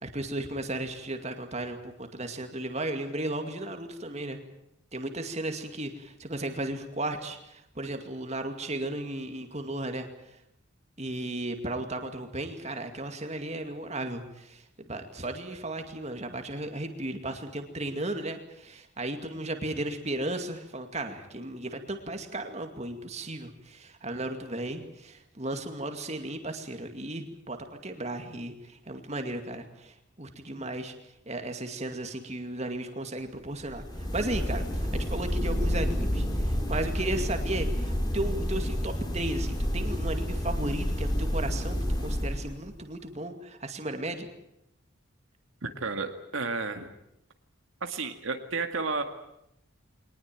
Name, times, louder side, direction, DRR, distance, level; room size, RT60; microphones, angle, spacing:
voice 1, 0.0-4.4 4.9-10.1 11.0-30.9 31.3-44.3, right 1 dB, 30° right, 6 dB, 2.3 m, -35 dB
sound 1, 33.6-42.8, equal, 20° left, 3.3 m, -29 dB
voice 2, 45.6-46.9 47.8-49.0, right 4 dB, 70° right, 6 dB, 2.0 m, -32 dB
23.0 x 19.5 x 9.1 m, 0.82 s
head